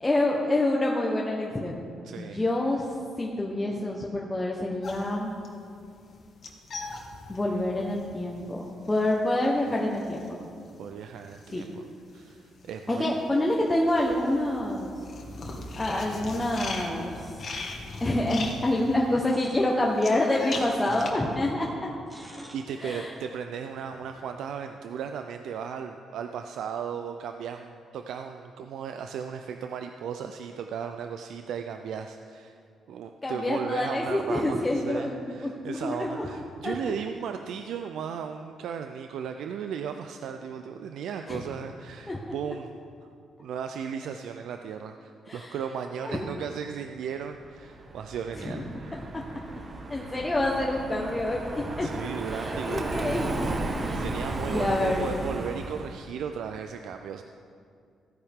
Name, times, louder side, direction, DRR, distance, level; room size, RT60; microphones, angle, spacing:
voice 1, 0.0-1.9 2.2-2.9 3.2-5.3 7.3-10.4 11.5-11.7 12.9-14.9 15.7-17.5 18.0-21.9 22.8-23.1 33.2-36.3 36.6-36.8 41.3-41.4 42.1-42.2 45.3-45.5 46.0-46.3 48.4-48.6 49.0-49.2 49.9-51.9 52.3-54.0 54.5-55.1, left 1 dB, 15° left, -2 dB, 1.2 m, -27 dB
voice 2, 2.0-2.4 10.8-11.9 12.1-13.1 20.9-21.0 22.5-32.6 32.9-42.7 43.4-49.1 51.8-53.1 53.9-57.2, right 7 dB, 75° right, 6 dB, 0.4 m, -36 dB
sound 1, 4.8-12.3 12.6-21.1, left 3 dB, 50° left, 1.6 m, -40 dB
sound 2, 19.3-21.4 21.7-24.2, equal, 15° right, 2.9 m, -50 dB
Car passing by, 47.5-56.0, right 2 dB, 40° right, 1.2 m, -34 dB
15.0 x 9.5 x 3.7 m, 2.4 s
cardioid pair, 90°, 0 cm